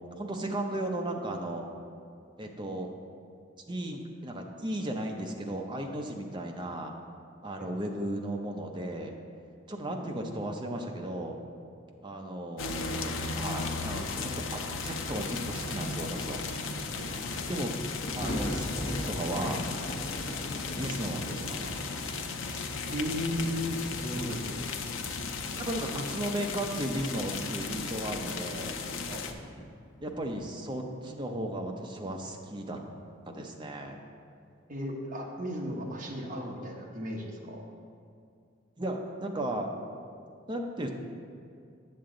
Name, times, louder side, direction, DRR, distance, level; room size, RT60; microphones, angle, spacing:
voice 1, 0.0-1.7 2.4-2.9 3.7-6.9 7.4-9.1 9.7-11.4 12.0-16.4 17.5-17.7 18.1-19.6 20.7-22.0 25.6-28.8 30.0-32.8 33.3-34.0 38.8-39.7 40.5-40.9, right 1 dB, 25° right, 2 dB, 0.7 m, -35 dB
voice 2, 9.9-10.4 17.0-17.6 22.9-24.4 25.9-26.1 29.1-29.2 34.7-37.7, equal, 40° right, -1 dB, 1.1 m, -35 dB
sound 1, 12.6-29.3, left 4 dB, 85° left, 0.6 m, -36 dB
Thunder, 15.1-26.4 26.8-28.3 28.7-28.8 29.4-30.6 32.1-32.2, equal, 50° left, 1.3 m, -41 dB
8.6 x 7.1 x 3.8 m, 2.4 s
head